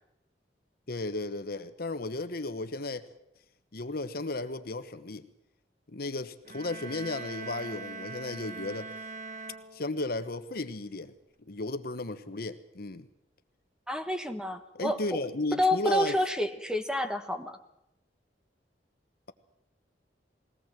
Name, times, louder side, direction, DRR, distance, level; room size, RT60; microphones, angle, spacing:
voice 1, 0.9-3.1 3.7-5.3 5.9-8.9 9.7-11.1 11.5-13.1 14.7-16.2, left 2 dB, 60° left, 11 dB, 1.2 m, -34 dB
sound 1, 6.4-10.3, right 3 dB, 50° right, 1.0 m, -42 dB
voice 2, 13.9-15.2 15.5-17.6, left 1 dB, 5° right, 8 dB, 1.2 m, -29 dB
21.0 x 18.0 x 7.5 m, 0.83 s
head